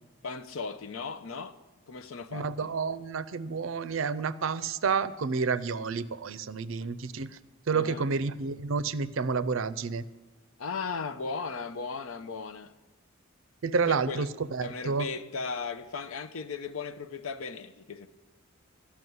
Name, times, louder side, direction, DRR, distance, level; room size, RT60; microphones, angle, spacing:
voice 1, 0.2-1.6 1.9-2.7 7.7-8.1 10.6-12.7 13.9-14.3 14.6-18.1, left 5 dB, 75° left, 0.7 m, -37 dB
voice 2, 2.3-7.3 7.7-10.0 13.6-15.1, right 5 dB, 65° right, 0.5 m, -30 dB
12.5 x 5.8 x 9.3 m
head